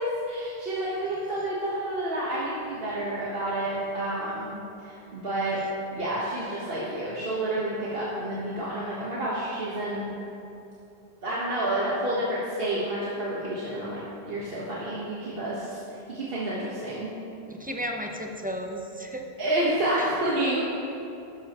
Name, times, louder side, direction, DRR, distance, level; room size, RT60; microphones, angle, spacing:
voice 1, 0.0-5.6 5.9-10.1 11.2-14.0 14.3-15.8 16.1-17.1 19.4-20.6, right 1 dB, 65° right, -7 dB, 1.6 m, -29 dB
voice 2, 17.5-19.2 20.0-20.1, equal, 10° right, 1 dB, 0.7 m, -34 dB
13.0 x 11.0 x 3.1 m, 2.8 s
omnidirectional pair, 1.1 m